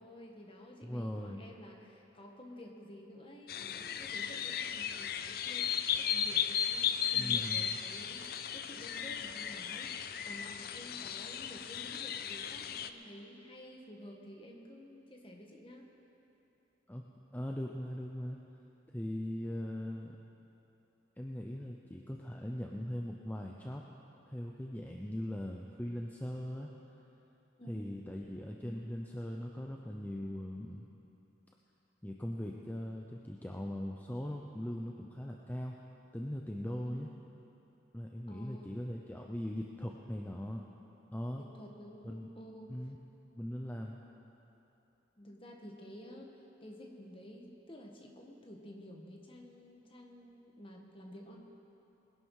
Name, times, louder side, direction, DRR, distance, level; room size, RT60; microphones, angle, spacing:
voice 1, 0.0-15.9 27.6-28.2 28.6-28.9 36.8-36.9 38.3-38.8 41.3-42.9 45.2-51.4, equal, 30° left, 1 dB, 1.5 m, -51 dB
voice 2, 0.8-1.5 7.1-7.8 16.9-17.0 17.3-18.4 18.9-20.2 21.2-23.8 24.3-26.7 27.7-30.9 32.0-35.8 36.1-37.1 37.9-40.6 41.1-41.4 42.0-42.3 42.7-43.0 43.4-44.0, equal, 10° left, 0 dB, 0.6 m, -40 dB
sound 1, 3.5-12.9, left 9 dB, 55° left, 0.5 m, -35 dB
21.0 x 11.0 x 4.8 m, 2.9 s
head